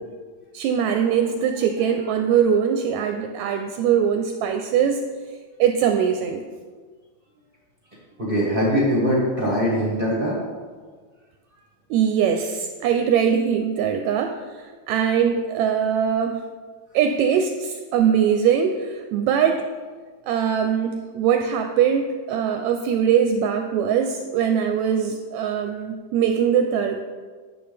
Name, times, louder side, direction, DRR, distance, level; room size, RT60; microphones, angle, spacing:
voice 1, 0.5-5.0 5.6-6.4 11.9-16.4 16.9-19.6 20.3-27.0, right 8 dB, 80° right, 5 dB, 1.7 m, -21 dB
voice 2, 8.2-10.4, equal, 40° right, -5 dB, 0.7 m, -21 dB
9.7 x 7.1 x 3.4 m, 1.5 s
omnidirectional pair, 3.5 m